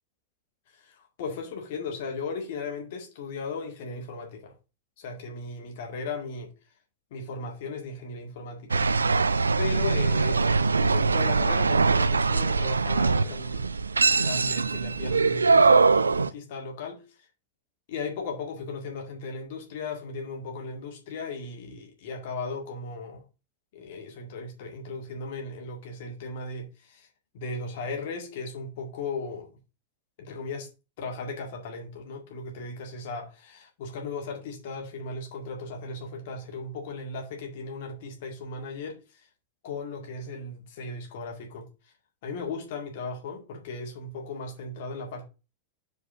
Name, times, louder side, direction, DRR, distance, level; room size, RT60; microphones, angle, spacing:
voice 1, 0.7-4.5 5.0-6.5 7.1-8.8 9.6-13.7 14.1-17.3 17.9-23.2 23.7-27.1 27.3-29.5 30.2-30.7 31.0-39.3 39.6-41.7 42.2-45.3, left 3 dB, 55° left, 2.0 m, -36 dB
sound 1, 8.7-16.3, right 4 dB, 75° right, 0.3 m, -22 dB
5.0 x 4.7 x 5.7 m
figure-of-eight pair, 90°, 0 cm